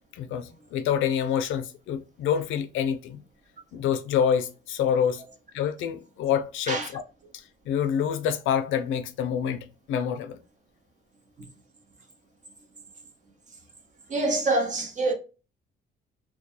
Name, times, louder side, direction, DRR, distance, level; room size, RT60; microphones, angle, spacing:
voice 1, 0.1-3.2 3.7-5.2 5.5-7.0 7.3-10.4, left 8 dB, 80° left, 0.4 m, -27 dB
voice 2, 14.1-15.1, right 2 dB, 40° right, 0.7 m, -25 dB
2.2 x 2.2 x 2.9 m
cardioid pair, 90°, 20 cm